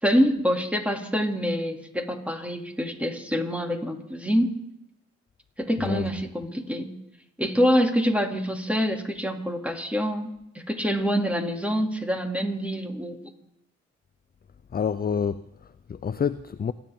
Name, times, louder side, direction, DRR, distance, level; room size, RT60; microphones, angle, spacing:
voice 1, 0.0-4.6 5.6-6.9 7.4-13.2, equal, 5° right, 2.6 m, -26 dB
voice 2, 5.8-6.1 14.7-16.7, left 7 dB, 30° left, 0.5 m, -28 dB
28.0 x 10.0 x 3.7 m
supercardioid pair, 50°, 30 cm